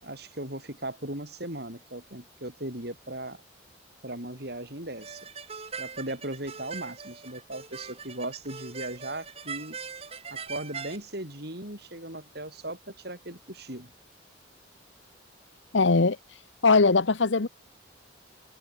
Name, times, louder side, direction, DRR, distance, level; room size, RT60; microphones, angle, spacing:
voice 1, 0.0-3.4 4.0-5.3 5.8-9.8 10.3-13.9, right 1 dB, 55° right, 7.3 m, -38 dB
sound 1, 5.0-11.0, right 6 dB, 30° right, 1.7 m, -41 dB
voice 2, 15.7-16.2 16.6-17.5, left 4 dB, 70° left, 0.9 m, -20 dB
head